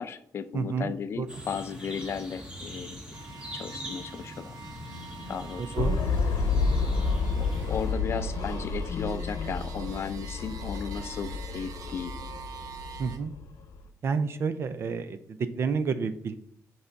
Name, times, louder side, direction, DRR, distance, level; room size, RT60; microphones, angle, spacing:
voice 1, 0.0-3.0 3.5-4.6 5.3-5.7 6.4-6.5 7.4-12.2, left 7 dB, 45° left, 11 dB, 0.4 m, -35 dB
voice 2, 0.5-1.3 5.6-6.0 6.5-6.8 13.0-13.4 14.0-16.3, right 5 dB, 45° right, 12 dB, 0.4 m, -30 dB
sound 1, 1.3-7.9, equal, 15° right, 1.5 m, -42 dB
sound 2, 3.1-13.2, right 6 dB, 70° right, 0.8 m, -47 dB
sound 3, 5.8-13.8, left 4 dB, 70° left, 0.8 m, -30 dB
5.7 x 5.5 x 3.9 m, 0.67 s
wide cardioid pair, 175°, 6 cm